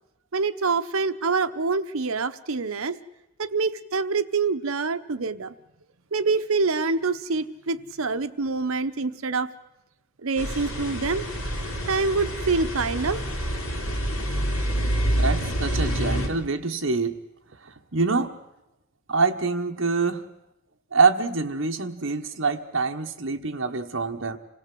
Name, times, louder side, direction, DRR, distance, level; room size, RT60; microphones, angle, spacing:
voice 1, 0.3-3.0 3.4-5.5 6.1-9.5 10.2-11.2 11.9-13.2 14.8-15.1, right 4 dB, 80° right, 11 dB, 0.9 m, -26 dB
sound 1, 10.4-16.3, equal, 85° left, 3.4 m, -27 dB
voice 2, 15.2-17.2 17.6-18.3 19.1-20.2 20.9-24.4, right 4 dB, 65° right, 4 dB, 1.3 m, -25 dB
26.5 x 17.0 x 7.8 m, 0.91 s
head